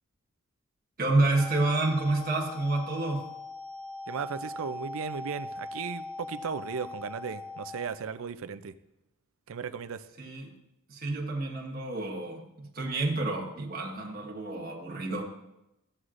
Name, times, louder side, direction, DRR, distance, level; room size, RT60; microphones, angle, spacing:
voice 1, 1.0-3.3 10.2-10.5 10.9-15.2, right 2 dB, 45° right, -2 dB, 1.3 m, -29 dB
sound 1, 1.4-7.9, left 3 dB, 20° left, 1.6 m, -41 dB
voice 2, 4.1-8.7 9.5-10.0, right 6 dB, 70° right, 12 dB, 0.5 m, -36 dB
14.5 x 7.9 x 2.5 m, 0.89 s
head